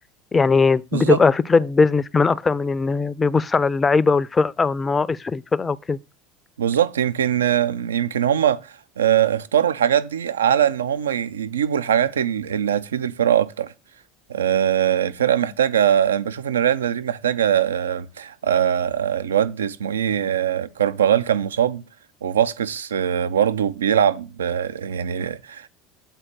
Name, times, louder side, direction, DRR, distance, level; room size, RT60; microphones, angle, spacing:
voice 1, 0.3-6.0, left 4 dB, 20° left, 0.4 m, -19 dB
voice 2, 6.6-13.7 14.3-21.8 22.2-25.7, right 9 dB, 75° right, 0.5 m, -21 dB
7.4 x 4.3 x 6.5 m
figure-of-eight pair, 70°, 0 cm